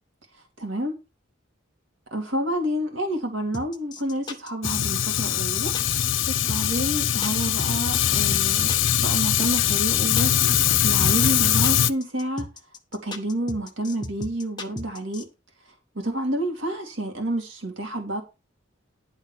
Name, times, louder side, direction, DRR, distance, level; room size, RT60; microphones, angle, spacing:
voice 1, 0.6-0.9 2.1-5.8 6.3-10.3 10.8-12.5 12.9-15.3 15.7-18.2, right 1 dB, 75° right, 2.3 m, -29 dB
sound 1, 3.5-15.2, left 2 dB, 20° left, 1.2 m, -36 dB
Fire, 4.6-11.9, left 10 dB, 70° left, 0.6 m, -22 dB
11.0 x 3.9 x 7.3 m
head